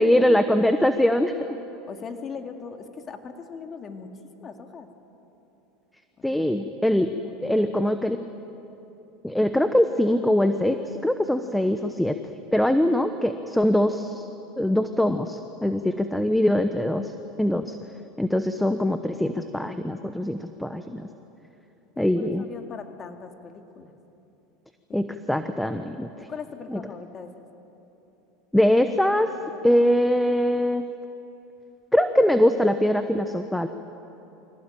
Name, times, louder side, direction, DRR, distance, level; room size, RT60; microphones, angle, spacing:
voice 1, 0.0-1.3 6.2-7.1 7.4-8.2 9.2-12.2 12.5-14.3 14.6-17.1 17.4-17.7 18.2-21.1 22.0-22.4 24.9-26.1 26.7-26.8 28.5-29.3 29.6-30.9 31.9-33.7, left 1 dB, 5° left, 9 dB, 0.9 m, -22 dB
voice 2, 1.9-4.9 6.2-6.7 7.2-8.0 15.7-16.0 22.0-23.9 26.2-27.3, left 5 dB, 35° left, 5 dB, 2.2 m, -40 dB
24.0 x 17.0 x 9.1 m, 3.0 s
hypercardioid pair, 95°, 0 cm